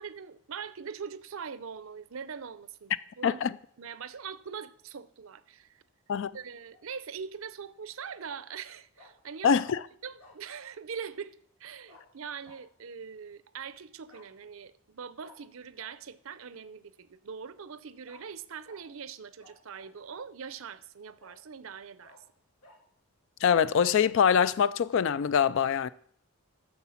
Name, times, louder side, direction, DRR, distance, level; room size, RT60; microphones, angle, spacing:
voice 1, 0.0-3.4 3.8-5.8 6.3-9.5 10.0-11.3 11.6-22.2, right 6 dB, 65° right, 0.6 m, -42 dB
voice 2, 3.2-3.5 6.1-6.3 9.4-9.8 23.4-25.9, left 7 dB, 55° left, 0.3 m, -24 dB
Bark, 6.5-6.9 8.2-8.4 9.0-9.1 9.6-9.8 10.2-10.4 11.9-12.1 12.4-12.6 14.1-14.3 15.2-15.4 15.8-15.9 18.0-18.2 18.6-18.8 19.4-20.0 20.5-20.6 21.2-21.4 22.0-22.2 22.6-22.8, left 2 dB, 90° left, 2.1 m, -56 dB
9.5 x 6.9 x 5.7 m
head